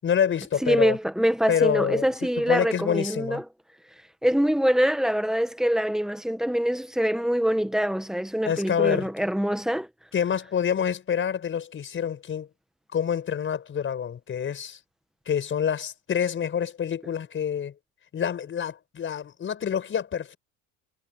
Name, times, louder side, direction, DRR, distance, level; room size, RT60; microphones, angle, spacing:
voice 1, 0.0-1.0 1.5-2.1 2.4-3.4 8.4-9.1 10.1-12.5 12.9-14.8 15.3-17.7 18.1-20.4, left 8 dB, 35° left, 5.3 m, -27 dB
voice 2, 0.6-3.4 4.2-9.9, equal, ahead, 1.5 m, -24 dB
supercardioid pair, 125°, 37 cm